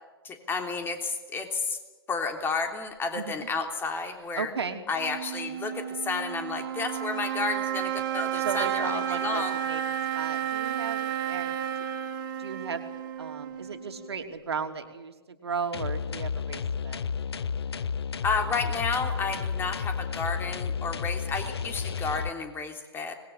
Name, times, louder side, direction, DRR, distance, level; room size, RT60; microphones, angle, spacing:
voice 1, 0.2-1.8 2.1-4.5 4.9-9.5 18.2-23.1, left 4 dB, 15° left, 5 dB, 3.3 m, -31 dB
voice 2, 3.1-3.5 4.3-4.8 8.4-9.8 10.1-11.9 12.4-12.8 13.2-17.0, right 5 dB, 75° right, 6 dB, 3.1 m, -35 dB
sound 1, 4.9-14.4, right 10 dB, 50° right, 2.5 m, -32 dB
sound 2, 15.7-22.3, left 6 dB, 70° left, 1.0 m, -32 dB
25.5 x 20.5 x 8.7 m, 1.2 s
figure-of-eight pair, 120°, 14 cm